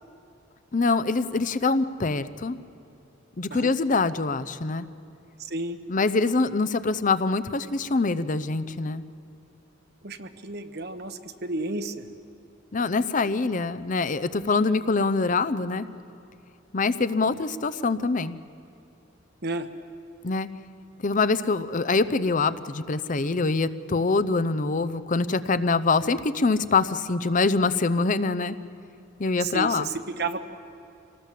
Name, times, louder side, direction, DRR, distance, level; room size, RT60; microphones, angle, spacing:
voice 1, 0.7-2.6 3.4-4.9 5.9-9.0 12.7-15.9 16.7-18.4 20.2-20.5 21.0-28.6 29.2-29.9, left 3 dB, 40° left, 14 dB, 0.6 m, -24 dB
voice 2, 5.4-5.8 10.0-12.1 19.4-19.7 29.4-30.4, right 3 dB, 55° right, 9 dB, 1.2 m, -32 dB
26.0 x 18.5 x 7.6 m, 2.7 s
head